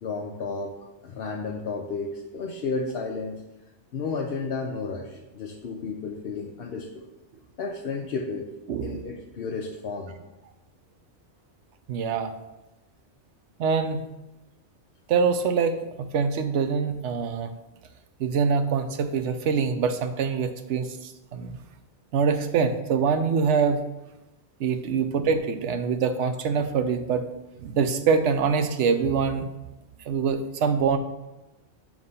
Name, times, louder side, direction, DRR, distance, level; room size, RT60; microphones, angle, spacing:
voice 1, 0.0-3.4 3.9-7.1 7.6-8.5 8.8-10.1, left 4 dB, 60° left, 0 dB, 0.8 m, -32 dB
voice 2, 8.7-9.0 11.9-12.3 13.6-14.0 15.1-17.5 18.2-21.6 22.1-23.8 24.6-27.3 27.6-29.5 30.1-31.0, right 5 dB, 75° right, 9 dB, 0.9 m, -24 dB
7.2 x 3.1 x 5.4 m, 1.0 s
omnidirectional pair, 1.2 m